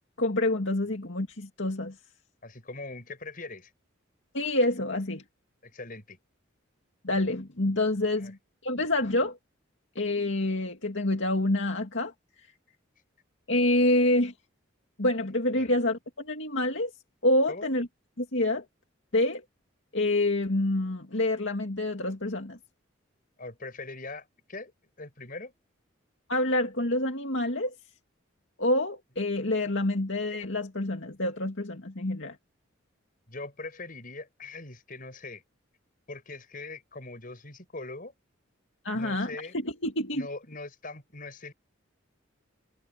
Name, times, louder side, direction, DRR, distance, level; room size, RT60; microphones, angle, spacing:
voice 1, 0.2-1.9 4.3-5.2 7.0-8.4 8.6-9.4 10.0-12.1 13.5-14.3 15.0-16.9 17.2-17.9 18.2-18.6 19.1-19.4 19.9-22.6 26.3-27.7 28.6-32.4 38.8-39.3 39.6-40.3, left 1 dB, 65° left, 2.4 m, -27 dB
voice 2, 2.4-3.7 5.6-6.2 8.2-8.3 15.6-15.7 17.5-17.7 23.4-24.7 25.0-25.5 33.3-35.4 36.1-38.1 38.9-39.5 40.1-41.5, left 3 dB, 45° left, 5.6 m, -41 dB
head